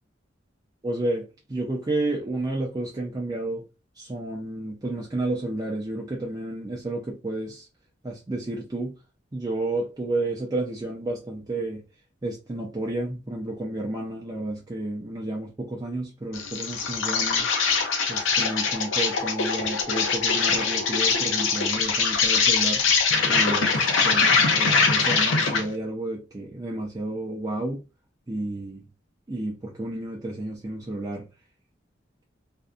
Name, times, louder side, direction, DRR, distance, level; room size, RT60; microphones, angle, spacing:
voice 1, 0.8-3.7 4.0-7.7 8.0-9.0 9.3-11.8 12.2-17.5 18.1-22.8 23.3-24.3 24.5-27.8 28.3-28.9 29.3-31.3, right 2 dB, 20° right, 0.4 m, -31 dB
Insect, 16.3-25.7, left 5 dB, 85° left, 0.6 m, -23 dB
2.6 x 2.2 x 2.4 m
head